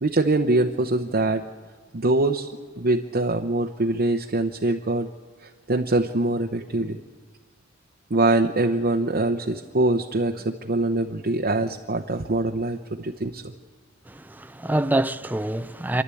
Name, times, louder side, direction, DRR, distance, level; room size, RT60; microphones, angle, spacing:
voice 1, 0.0-1.4 1.9-5.1 5.7-7.0 8.1-13.5, right 2 dB, 50° right, 0.8 m, -23 dB
voice 2, 14.1-16.0, right 1 dB, 10° right, 0.5 m, -26 dB
29.0 x 11.5 x 8.4 m
head